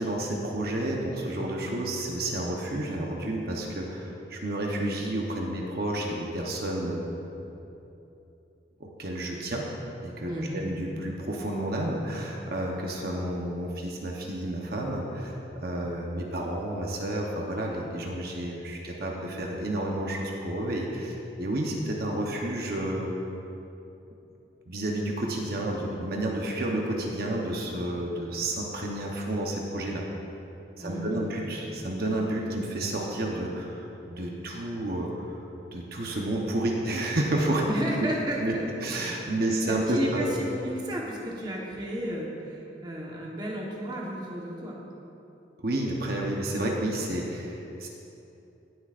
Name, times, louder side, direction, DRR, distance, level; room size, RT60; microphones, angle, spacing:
voice 1, 0.0-7.4 8.8-9.7 10.0-23.1 24.7-30.1 30.8-35.4 35.7-37.6 38.4-38.5 38.8-40.4 45.6-47.9, right 1 dB, 55° right, -1 dB, 1.0 m, -30 dB
voice 2, 10.3-10.6 30.8-31.4 37.6-38.9 39.5-44.8, equal, 25° right, -3 dB, 1.2 m, -33 dB
18.0 x 7.8 x 2.5 m, 2.9 s
head